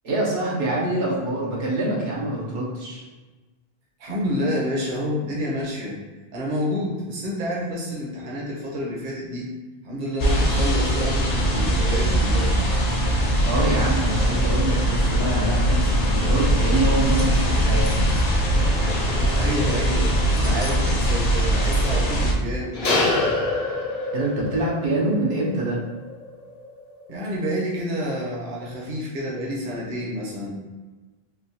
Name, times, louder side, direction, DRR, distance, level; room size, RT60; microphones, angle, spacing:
voice 1, 0.0-3.0 13.4-18.0 24.1-25.8, right 1 dB, 90° right, -5 dB, 1.1 m, -25 dB
voice 2, 4.0-6.0 6.3-9.5 9.8-12.7 19.4-20.1 20.4-23.1 27.1-30.6, equal, 55° right, -4 dB, 0.9 m, -28 dB
sound 1, 10.2-22.3, equal, 50° left, 0.5 m, -21 dB
sound 2, 18.6-21.3 21.6-21.7 22.7-27.6 27.9-28.3, left 2 dB, 75° left, 0.9 m, -29 dB
3.5 x 2.3 x 2.7 m, 1.2 s
omnidirectional pair, 1.0 m